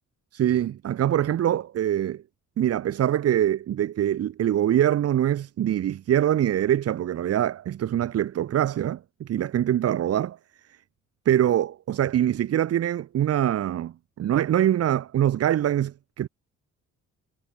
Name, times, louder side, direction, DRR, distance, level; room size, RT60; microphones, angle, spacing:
voice 1, 0.3-2.2 2.6-10.4 11.3-16.3, right 11 dB, 55° right, 0.8 m, -24 dB
cardioid pair, 90°, 30 cm